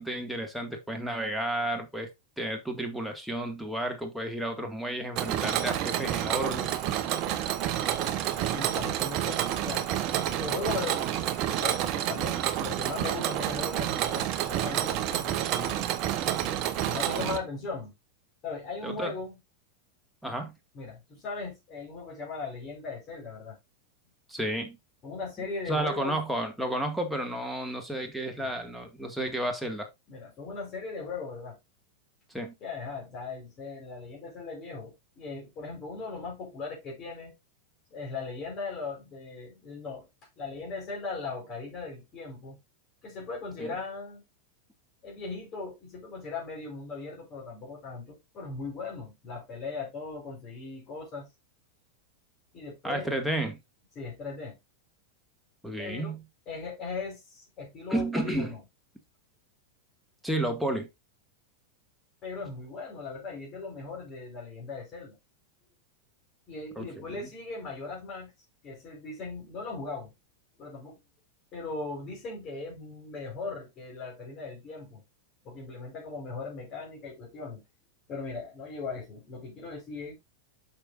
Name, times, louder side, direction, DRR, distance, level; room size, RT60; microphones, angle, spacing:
voice 1, 0.0-2.1 2.4-6.7 18.8-19.1 20.2-20.5 24.3-24.8 25.7-29.9 32.3-32.6 43.6-43.7 52.8-53.6 55.6-56.2 57.9-58.5 60.2-60.9 66.8-67.3, right 1 dB, ahead, 2.0 m, -32 dB
Mechanisms, 5.2-17.4, right 11 dB, 40° right, 1.0 m, -29 dB
voice 2, 7.9-9.8 10.4-15.8 16.8-17.9 18.4-19.3 20.7-23.6 25.0-26.2 28.4-28.5 30.1-31.6 32.6-37.3 37.9-40.1 40.4-42.6 43.0-44.2 45.0-51.3 52.5-53.1 54.0-54.6 55.8-56.2 56.5-58.6 62.2-65.2 66.5-68.3 68.6-70.1 70.6-71.0 71.5-75.0 75.4-77.6 78.1-80.2, left 4 dB, 30° left, 4.3 m, -38 dB
8.8 x 6.6 x 2.6 m
figure-of-eight pair, 90°, 0 cm